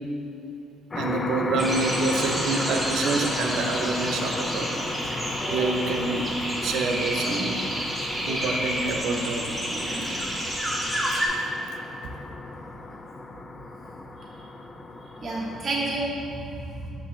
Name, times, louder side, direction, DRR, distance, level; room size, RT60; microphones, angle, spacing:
sound 1, 0.9-15.6, left 2 dB, 25° left, 0.4 m, -34 dB
voice 1, 0.9-4.9 5.5-6.3 6.6-7.6 8.3-9.4 11.1-11.3 12.0-12.1, right 3 dB, 75° right, 4 dB, 0.6 m, -27 dB
sound 2, 1.6-11.3, equal, 5° right, 0.8 m, -30 dB
voice 2, 9.4-10.1 15.2-16.9, right 2 dB, 30° right, -5 dB, 1.1 m, -31 dB
6.2 x 6.0 x 3.1 m, 2.6 s
cardioid pair, 140°, 0 cm